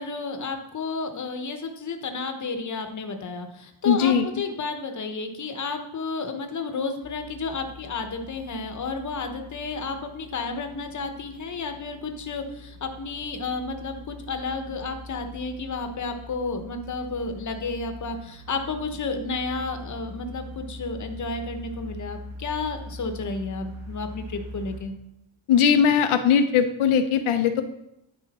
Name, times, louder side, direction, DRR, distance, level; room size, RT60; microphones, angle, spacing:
voice 1, 0.0-24.9, left 4 dB, 40° left, 6 dB, 1.0 m, -32 dB
voice 2, 3.9-4.3 25.5-27.6, left 7 dB, 85° left, 7 dB, 0.7 m, -20 dB
sound 1, 7.0-24.8, left 1 dB, 50° right, 1.7 m, -42 dB
10.5 x 4.9 x 4.2 m, 0.82 s
wide cardioid pair, 135°, 48 cm